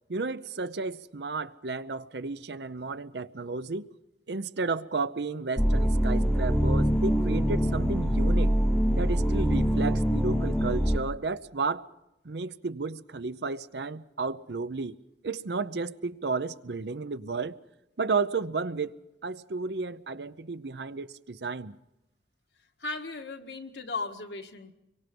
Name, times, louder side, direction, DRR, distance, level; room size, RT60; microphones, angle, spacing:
voice 1, 0.1-3.9 4.3-8.5 8.9-11.9 12.2-15.0 15.2-17.6 18.0-18.9 19.2-21.8, right 4 dB, 70° right, 0.7 m, -32 dB
sound 1, 5.6-11.0, equal, 5° left, 0.9 m, -24 dB
voice 2, 22.8-24.7, left 3 dB, 75° left, 1.7 m, -36 dB
25.5 x 24.0 x 5.3 m
head